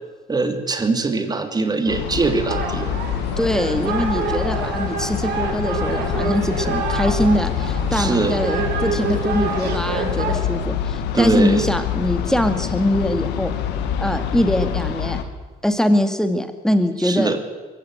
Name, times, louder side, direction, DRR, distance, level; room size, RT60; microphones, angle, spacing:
voice 1, 0.3-3.0 7.9-8.4 11.1-11.6 17.0-17.4, right 3 dB, 25° right, 7 dB, 2.9 m, -22 dB
sound 1, 1.9-15.2, left 9 dB, 90° left, 2.1 m, -26 dB
sound 2, 2.5-10.4, right 6 dB, 75° right, 4.6 m, -27 dB
voice 2, 3.4-13.5 14.0-15.2 15.6-17.4, equal, 5° left, 8 dB, 2.4 m, -22 dB
23.0 x 15.5 x 9.3 m, 1.4 s
cardioid pair, 110°, 17 cm